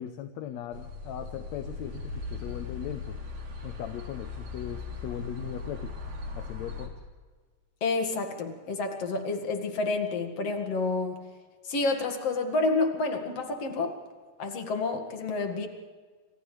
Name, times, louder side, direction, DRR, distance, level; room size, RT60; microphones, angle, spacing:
voice 1, 0.0-3.2 3.6-6.0 6.3-6.9, left 10 dB, 75° left, 7 dB, 2.0 m, -39 dB
sound 1, 0.7-6.9, left 3 dB, 90° right, 4.8 m, -38 dB
voice 2, 7.8-11.2 11.6-13.9 14.4-15.7, left 3 dB, 55° left, 4 dB, 3.0 m, -29 dB
29.5 x 26.5 x 3.4 m, 1.5 s
omnidirectional pair, 3.4 m